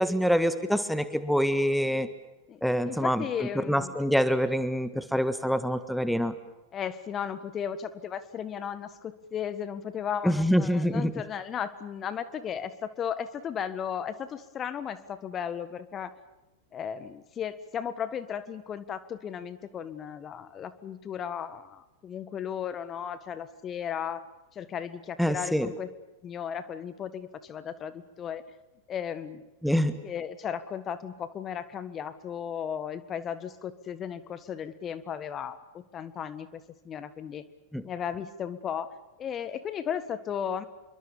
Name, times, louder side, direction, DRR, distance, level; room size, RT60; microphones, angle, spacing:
voice 1, 0.0-2.1 2.6-6.3 10.2-11.1 25.2-25.7 29.6-29.9 37.7-37.8, equal, ahead, 12 dB, 1.5 m, -26 dB
voice 2, 2.9-4.0 6.7-16.1 16.7-24.2 24.5-25.9 26.2-28.4 28.9-29.4 30.0-37.4 37.8-38.9 39.2-40.7, left 8 dB, 30° left, 13 dB, 1.6 m, -35 dB
27.5 x 23.5 x 7.1 m, 0.98 s
figure-of-eight pair, 90°, 0 cm